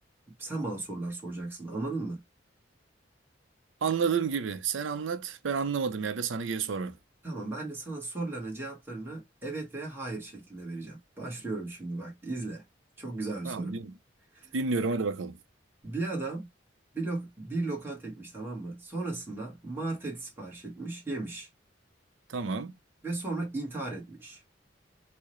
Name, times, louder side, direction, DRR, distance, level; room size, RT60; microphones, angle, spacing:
voice 1, 0.4-2.2 7.2-12.6 13.0-13.7 14.3-14.5 15.8-16.5 16.9-21.5 23.0-24.4, right 2 dB, 10° right, 1.2 m, -36 dB
voice 2, 3.8-7.0 13.4-14.0 14.5-15.4 22.3-22.7, right 5 dB, 90° right, 0.5 m, -30 dB
4.6 x 2.1 x 3.0 m
head